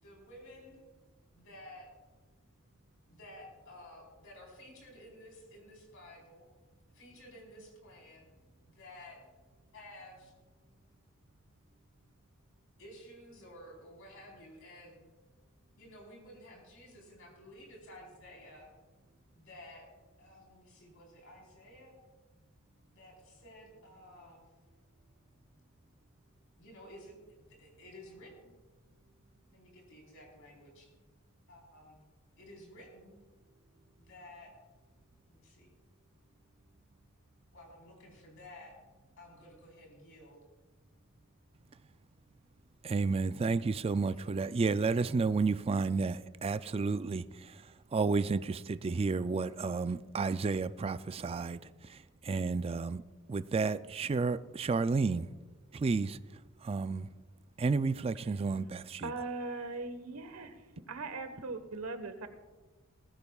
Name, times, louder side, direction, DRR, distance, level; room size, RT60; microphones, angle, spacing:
voice 1, 0.0-0.8 1.3-1.9 3.0-6.5 6.9-8.3 8.6-9.2 9.7-10.3 12.8-15.0 15.8-18.7 19.4-19.9 20.2-22.0 22.9-24.4 26.6-28.5 29.5-30.9 31.5-32.0 32.4-33.2 34.0-34.5 35.3-35.7 37.5-38.7 39.2-40.4 44.1-44.7, left 1 dB, 65° left, 4.1 m, -53 dB
voice 2, 42.8-53.0 53.3-55.3 55.7-56.2 56.6-57.1 57.6-59.1, right 4 dB, 25° right, 0.3 m, -31 dB
voice 3, 59.0-60.6 60.9-62.3, right 3 dB, 80° right, 1.2 m, -39 dB
19.5 x 15.0 x 2.4 m
head